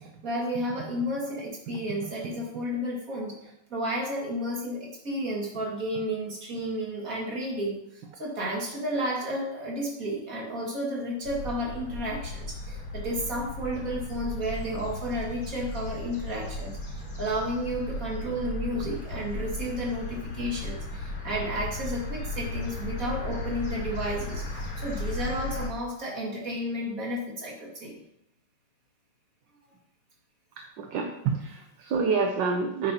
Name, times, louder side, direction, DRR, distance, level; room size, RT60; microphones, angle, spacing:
voice 1, 0.2-3.4 3.7-28.0, equal, 40° right, -2 dB, 2.5 m, -32 dB
sound 1, 11.2-25.7, left 2 dB, 80° left, 4.0 m, -35 dB
voice 2, 30.6-32.9, right 5 dB, 65° right, 3 dB, 1.4 m, -28 dB
9.9 x 8.7 x 2.9 m, 0.78 s
omnidirectional pair, 2.4 m